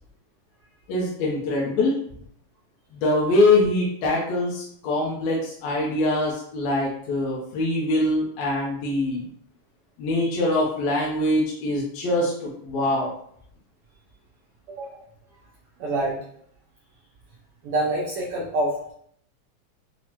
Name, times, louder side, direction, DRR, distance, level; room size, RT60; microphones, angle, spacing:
voice 1, 0.9-2.0 2.9-9.3 10.0-13.1, left 2 dB, 75° left, -4 dB, 1.8 m, -23 dB
voice 2, 14.7-15.0 15.8-16.2 17.6-18.9, right 1 dB, 85° right, -5 dB, 1.2 m, -27 dB
5.9 x 2.1 x 2.8 m, 0.66 s
omnidirectional pair, 3.4 m